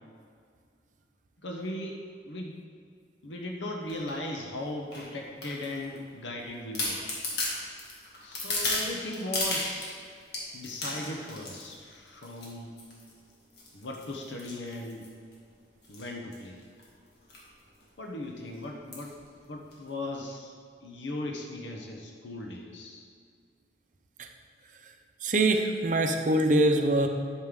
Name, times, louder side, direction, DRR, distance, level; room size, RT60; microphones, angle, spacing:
voice 1, 1.4-2.5 3.2-7.0 8.2-10.0 10.5-12.8 13.7-15.1 15.9-16.6 18.0-19.1 19.5-20.5 20.8-23.1, left 1 dB, 85° left, 1 dB, 0.9 m, -38 dB
sound 1, 3.9-4.2 4.9-6.0 6.4-6.5 6.7-9.9 10.3-11.7 12.2-12.5 12.8-13.1 13.6-15.3 15.8-16.1 16.3-16.4 16.6-16.8 17.3-17.5 17.8-17.9 18.9-19.2 19.7-19.8, left 2 dB, 65° left, 1.8 m, -34 dB
voice 2, 25.2-27.1, right 1 dB, 45° right, 5 dB, 0.7 m, -24 dB
11.0 x 6.4 x 3.7 m, 2.2 s
head